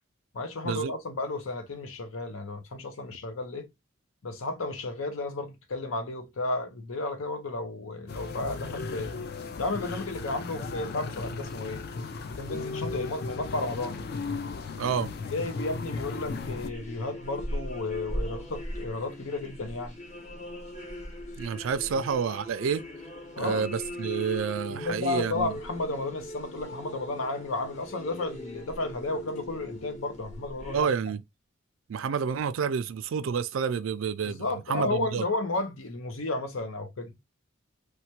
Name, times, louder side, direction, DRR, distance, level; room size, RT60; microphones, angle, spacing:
voice 1, 0.3-3.7 4.2-9.1 9.6-11.8 12.2-14.0 15.3-19.9 21.9-22.0 23.4-23.7 24.7-30.9 34.3-37.1, left 2 dB, 90° left, 0.7 m, -33 dB
sound 1, 8.1-16.7, left 4 dB, 50° left, 0.4 m, -36 dB
voice 2, 14.8-15.1 21.4-22.8 23.4-25.5 30.7-31.2 31.9-35.2, right 6 dB, 80° right, 0.4 m, -29 dB
sound 2, 16.0-30.8, left 1 dB, 35° left, 0.8 m, -40 dB
3.2 x 2.2 x 2.8 m
head